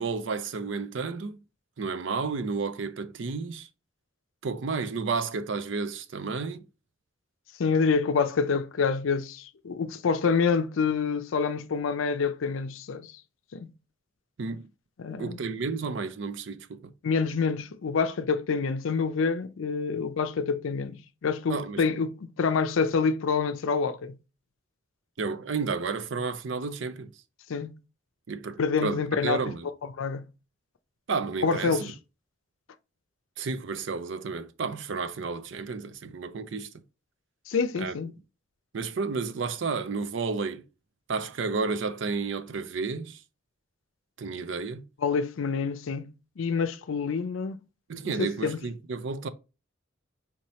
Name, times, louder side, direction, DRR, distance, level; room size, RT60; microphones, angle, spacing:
voice 1, 0.0-1.4 1.8-3.7 4.4-6.6 14.4-14.7 15.2-16.9 21.5-21.8 25.2-27.1 28.3-29.7 31.1-31.9 33.4-36.7 37.8-37.9 38.7-40.6 41.1-43.2 44.2-44.9 47.9-49.3, right 4 dB, 65° right, 0.5 m, -31 dB
voice 2, 7.6-13.2 13.5-13.7 15.0-15.4 17.0-24.2 27.5-27.7 28.6-29.4 30.0-30.2 31.4-31.9 37.5-38.1 45.0-47.6 48.0-48.6, left 5 dB, 75° left, 0.5 m, -27 dB
4.4 x 2.8 x 3.1 m
head